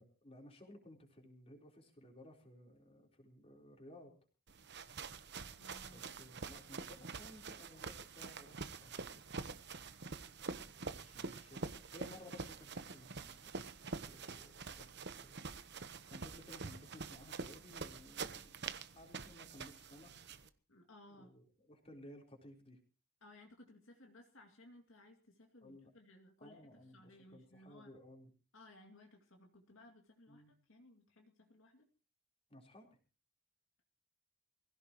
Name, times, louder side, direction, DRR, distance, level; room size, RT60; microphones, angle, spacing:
voice 1, 0.0-4.1 5.9-9.2 10.8-13.4 14.0-18.5 18.9-20.2 21.2-22.8 25.6-25.9 26.4-28.3 30.3-30.5 32.5-33.0, left 1 dB, 25° left, 1 dB, 4.0 m, -58 dB
sound 1, 4.5-20.5, right 4 dB, 50° right, 1.1 m, -46 dB
voice 2, 5.6-6.0 20.7-21.3 23.2-26.6 26.9-27.9 28.5-31.8, left 1 dB, 60° left, 2 dB, 2.6 m, -60 dB
23.5 x 16.0 x 3.0 m, 0.36 s
head